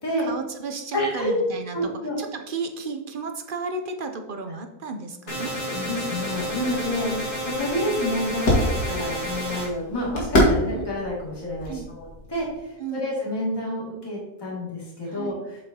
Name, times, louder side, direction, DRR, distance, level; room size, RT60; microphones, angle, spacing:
voice 1, 0.2-5.6 7.0-7.3 10.7-10.9 11.7-11.9 12.8-13.1 15.0-15.4, right 4 dB, 55° right, 6 dB, 0.6 m, -34 dB
voice 2, 0.9-1.3 1.7-2.2 5.7-7.1 7.4-15.3, left 1 dB, 15° left, -6 dB, 2.3 m, -29 dB
sound 1, 5.3-9.7, equal, 55° left, 2.4 m, -30 dB
sound 2, 6.3-12.6, left 1 dB, 90° left, 2.5 m, -27 dB
7.9 x 7.6 x 2.8 m, 0.99 s
omnidirectional pair, 1.6 m